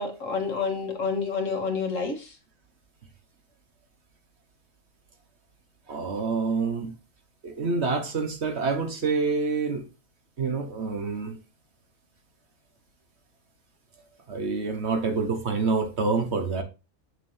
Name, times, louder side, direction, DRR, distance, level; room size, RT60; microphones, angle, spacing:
voice 1, 0.0-2.4, left 4 dB, 70° left, 2.0 m, -29 dB
voice 2, 5.9-6.9 7.4-9.9 10.4-11.4 14.3-16.6, right 4 dB, 55° right, 1.5 m, -27 dB
7.6 x 6.4 x 2.8 m
omnidirectional pair, 1.4 m